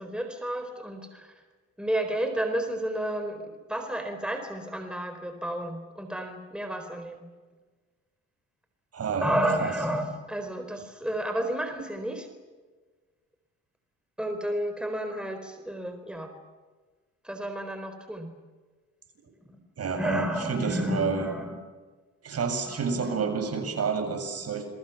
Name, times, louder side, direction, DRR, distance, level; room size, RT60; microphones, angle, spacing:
voice 1, 0.0-1.3 1.8-7.2 9.2-12.3 14.2-16.3 17.2-18.3 20.0-21.6 22.7-23.6, right 1 dB, 5° right, 6 dB, 4.2 m, -31 dB
voice 2, 8.9-9.3 9.6-9.7 19.8-21.3 22.2-24.7, right 5 dB, 55° right, 5 dB, 7.4 m, -29 dB
29.5 x 22.5 x 7.2 m, 1.4 s
cardioid pair, 90°, 30 cm